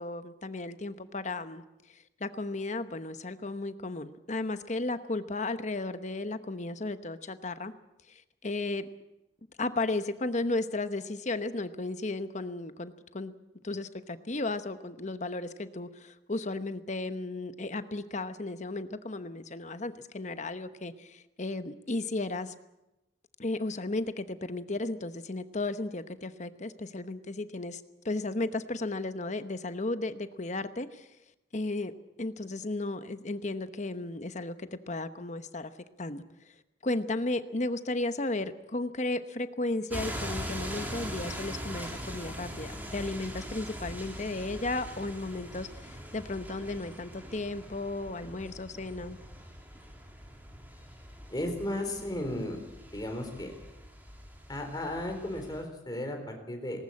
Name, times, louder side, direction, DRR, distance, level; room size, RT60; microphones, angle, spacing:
voice 1, 0.0-1.6 1.9-7.7 8.1-8.9 9.6-13.3 13.6-22.5 23.4-31.1 31.5-31.9 32.2-35.7 36.0-36.2 36.8-49.2, left 2 dB, 40° left, 11 dB, 1.0 m, -34 dB
sound 1, 39.9-55.6, equal, 10° right, 3.2 m, -42 dB
voice 2, 51.3-52.6 52.9-53.5 54.5-56.8, left 1 dB, 20° left, 4 dB, 3.9 m, -34 dB
19.0 x 19.0 x 8.6 m, 0.94 s
head